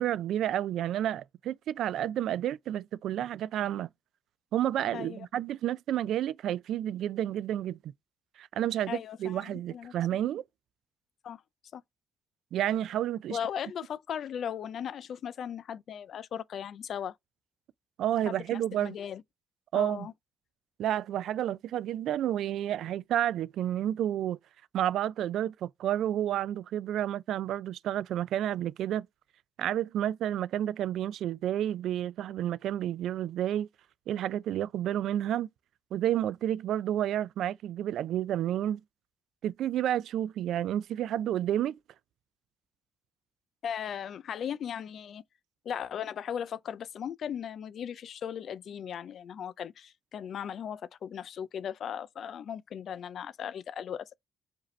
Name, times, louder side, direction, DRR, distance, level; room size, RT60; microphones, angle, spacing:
voice 1, 0.0-3.9 4.5-7.9 8.4-10.4 12.5-13.4 18.0-18.9 19.7-20.1 20.8-24.4 24.7-29.1 29.6-33.7 34.1-35.5 35.9-38.8 39.4-41.8, right 11 dB, 75° right, 0.3 m, -30 dB
voice 2, 4.9-5.3 8.9-10.2 11.2-11.4 11.7-11.8 13.3-17.1 18.3-19.2 19.7-20.1 43.6-45.2 45.6-54.2, left 8 dB, 65° left, 0.3 m, -37 dB
5.0 x 2.6 x 3.1 m
cardioid pair, 90°, 0 cm